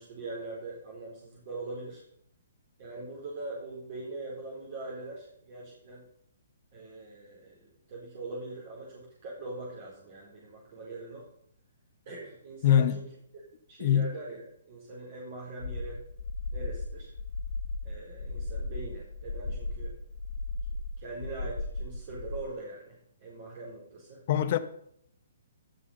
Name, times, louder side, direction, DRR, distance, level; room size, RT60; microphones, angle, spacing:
voice 1, 0.0-2.0 2.8-6.0 6.7-11.3 12.0-13.0 13.3-13.4 13.7-16.0 16.5-17.1 17.8-20.0 21.0-24.2, right 2 dB, 45° right, 4.4 m, -42 dB
voice 2, 12.6-13.0 13.8-14.1 24.3-24.6, left 10 dB, 45° left, 1.1 m, -23 dB
sound 1, 15.6-22.4, left 2 dB, 70° left, 1.6 m, -36 dB
18.0 x 6.2 x 5.6 m
figure-of-eight pair, 130°, 0 cm